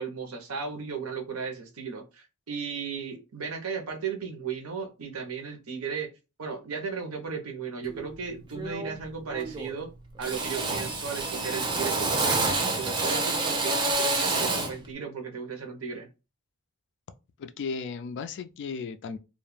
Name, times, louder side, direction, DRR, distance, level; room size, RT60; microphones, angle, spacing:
voice 1, 0.0-6.1 6.4-9.9 10.2-16.1, right 6 dB, 80° right, 0.7 m, -35 dB
Drill, 7.9-8.1 8.5-9.0 9.3-9.9 10.2-14.8, right 3 dB, 20° right, 0.4 m, -28 dB
voice 2, 17.4-19.2, left 5 dB, 55° left, 0.3 m, -35 dB
2.3 x 2.1 x 3.1 m
head